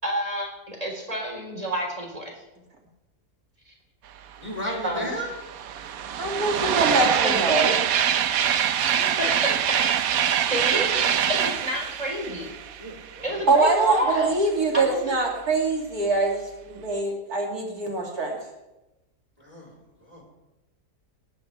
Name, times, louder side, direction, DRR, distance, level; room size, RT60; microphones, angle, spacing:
voice 1, 0.0-2.3 3.7-3.8 4.8-5.2 7.0-7.1 9.0-9.6 10.1-12.5 13.2-14.3 14.7-15.1, equal, 25° right, -1 dB, 4.1 m, -30 dB
voice 2, 4.4-5.4 6.5-7.3 8.7-9.2 10.4-10.5 10.9-11.0 11.3-11.4 12.8-13.4 19.4-20.2, equal, 25° left, -2 dB, 4.4 m, -36 dB
sound 1, 4.6-4.7 4.9-13.6, right 9 dB, 70° right, 1.2 m, -24 dB
voice 3, 6.2-7.8 13.5-18.4, right 3 dB, 90° right, -1 dB, 3.2 m, -23 dB
19.0 x 16.0 x 3.4 m, 0.99 s
omnidirectional pair, 1.6 m